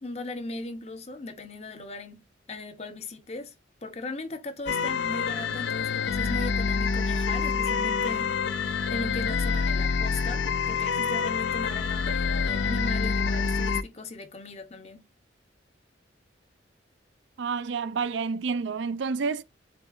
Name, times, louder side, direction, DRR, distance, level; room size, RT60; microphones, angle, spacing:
voice 1, 0.0-2.2 2.5-3.5 3.8-15.1, left 2 dB, 35° left, 0.7 m, -38 dB
sound 1, 4.7-13.8, left 5 dB, 75° left, 0.4 m, -27 dB
voice 2, 17.4-19.4, right 5 dB, 75° right, 0.4 m, -29 dB
7.7 x 2.7 x 2.4 m
head